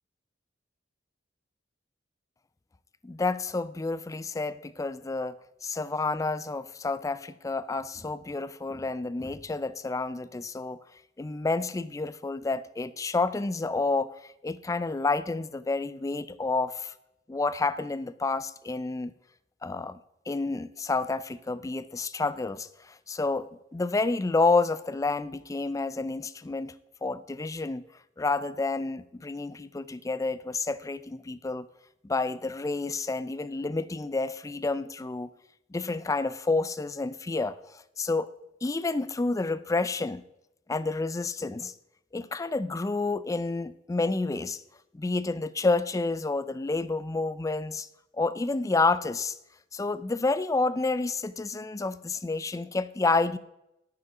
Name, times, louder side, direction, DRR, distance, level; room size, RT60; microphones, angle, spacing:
voice 1, 3.0-5.4 5.6-10.8 11.2-14.1 14.4-16.9 17.3-19.1 19.6-20.0 20.3-26.7 27.0-27.8 28.2-31.7 32.0-35.3 35.7-37.6 38.0-38.3 38.6-40.2 40.7-41.7 42.1-44.6 44.9-47.9 48.1-49.4 49.7-53.4, left 3 dB, 15° left, 15 dB, 0.4 m, -29 dB
9.4 x 5.4 x 6.0 m, 0.85 s
head